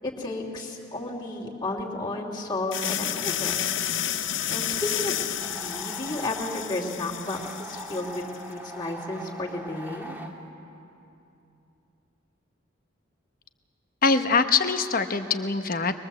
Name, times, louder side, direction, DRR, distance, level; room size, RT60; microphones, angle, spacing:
voice 1, 0.0-3.7 4.5-8.2 8.5-10.2, left 2 dB, 20° left, -4 dB, 2.7 m, -33 dB
sound 1, 2.7-8.4, left 10 dB, 70° left, 0.8 m, -31 dB
sound 2, 5.4-6.7 7.2-10.3, right 1 dB, 10° right, 1.8 m, -41 dB
voice 2, 14.0-16.0, left 4 dB, 45° left, 7 dB, 1.0 m, -23 dB
23.5 x 22.0 x 7.6 m, 2.7 s
head